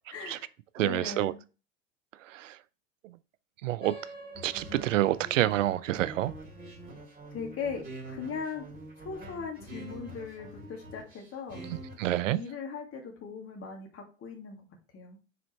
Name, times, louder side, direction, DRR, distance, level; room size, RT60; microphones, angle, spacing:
voice 1, 0.1-0.5 0.8-1.4 7.3-8.7 9.0-11.6 12.3-14.6 14.9-15.2, left 5 dB, 35° left, 2.2 m, -39 dB
voice 2, 0.8-1.3 2.2-2.6 3.0-3.2 3.6-4.0 4.4-6.3 11.6-12.4, right 14 dB, 75° right, 0.5 m, -28 dB
sound 1, 3.8-8.8, right 2 dB, 90° left, 1.2 m, -51 dB
sound 2, 4.3-12.2, right 1 dB, 25° right, 2.6 m, -45 dB
5.1 x 4.2 x 4.4 m
figure-of-eight pair, 80°, 38 cm